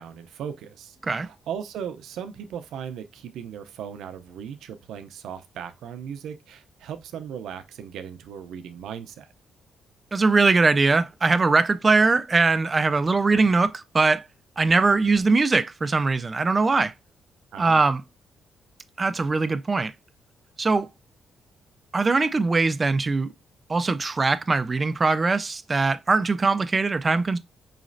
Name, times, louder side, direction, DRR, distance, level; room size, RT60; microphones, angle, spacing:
voice 1, 0.0-9.3 17.5-17.9, right 8 dB, 90° right, 0.5 m, -37 dB
voice 2, 10.1-14.2 14.6-16.9 17.6-18.0 19.0-19.9 20.6-20.9 21.9-23.3 23.7-27.4, right 3 dB, 25° right, 0.3 m, -21 dB
4.8 x 3.1 x 2.5 m
cardioid pair, 125°, 0 cm